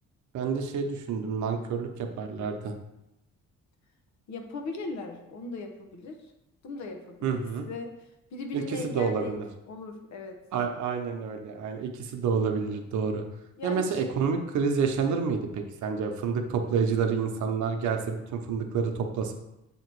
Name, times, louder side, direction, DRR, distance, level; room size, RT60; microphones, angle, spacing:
voice 1, 0.3-2.7 7.2-7.7 8.5-9.5 10.5-13.2 13.6-19.4, right 5 dB, 70° right, 4 dB, 0.8 m, -29 dB
voice 2, 4.3-6.2 6.6-10.4 13.6-14.0, left 3 dB, 65° left, 4 dB, 1.0 m, -39 dB
7.2 x 2.9 x 4.6 m, 0.90 s
cardioid pair, 90°, 30 cm